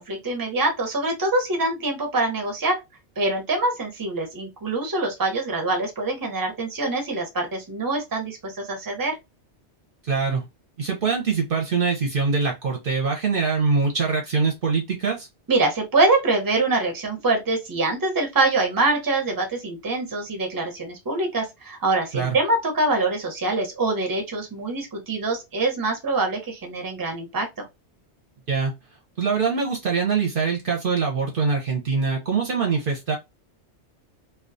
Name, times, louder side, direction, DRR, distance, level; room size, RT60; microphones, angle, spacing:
voice 1, 0.0-2.8 3.2-9.2 15.5-27.5, right 2 dB, 20° right, 0.7 m, -24 dB
voice 2, 10.0-10.4 10.8-15.3 22.1-22.4 28.5-28.7 29.2-33.2, right 5 dB, 55° right, 0.8 m, -23 dB
2.3 x 2.3 x 2.5 m
omnidirectional pair, 1.2 m